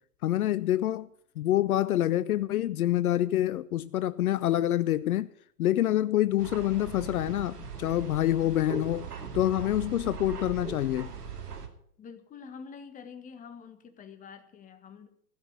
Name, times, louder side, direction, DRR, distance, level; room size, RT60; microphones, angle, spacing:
voice 1, 0.2-1.1 1.4-5.3 5.6-9.1 9.3-11.1, left 13 dB, 65° left, 0.6 m, -26 dB
sound 1, 6.4-11.7, right 6 dB, 80° right, 2.6 m, -39 dB
voice 2, 12.0-15.1, left 6 dB, 15° left, 1.6 m, -46 dB
15.5 x 6.0 x 9.6 m
hypercardioid pair, 125°, 47 cm